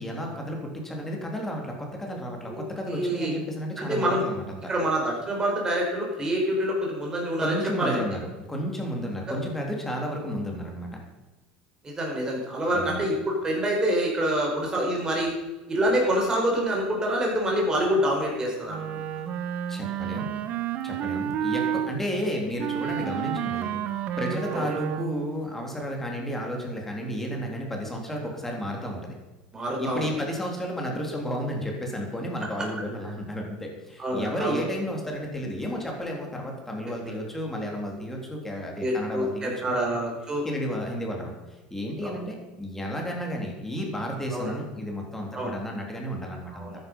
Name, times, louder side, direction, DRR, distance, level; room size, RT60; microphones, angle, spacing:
voice 1, 0.0-4.7 7.4-11.0 12.7-13.1 19.7-20.3 20.8-29.1 29.6-39.7 40.4-46.7, equal, 10° left, 0 dB, 3.6 m, -32 dB
voice 2, 2.5-3.3 3.8-4.2 4.7-8.0 9.3-9.4 11.8-15.3 15.7-19.0 24.5-24.6 29.5-30.0 34.0-34.6 37.1-37.2 38.8-40.4 42.0-42.1 44.3-44.5 45.3-45.5 46.5-46.8, right 1 dB, 20° right, -1 dB, 5.3 m, -26 dB
Wind instrument woodwind instrument, 18.7-21.9 22.6-25.3, right 10 dB, 45° right, 1.1 m, -30 dB
13.5 x 10.5 x 5.6 m, 1.1 s
supercardioid pair, 130°, 4 cm